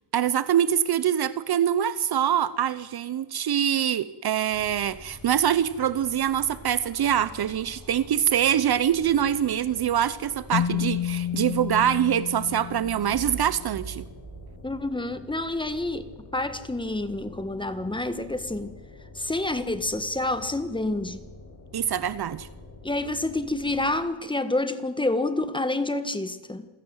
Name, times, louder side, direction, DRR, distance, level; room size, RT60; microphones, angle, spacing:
voice 1, 0.1-14.1 21.7-22.5, right 10 dB, 50° right, 0.9 m, -24 dB
sound 1, 4.5-24.1, left 2 dB, 40° left, 6.3 m, -47 dB
Keyboard (musical), 10.5-13.8, left 11 dB, 90° left, 1.8 m, -30 dB
sound 2, 12.8-15.5, right 6 dB, 30° right, 2.8 m, -42 dB
voice 2, 14.6-18.7 19.1-21.2 22.8-26.7, left 2 dB, 10° left, 1.4 m, -28 dB
27.5 x 16.5 x 8.1 m
wide cardioid pair, 145°, 47 cm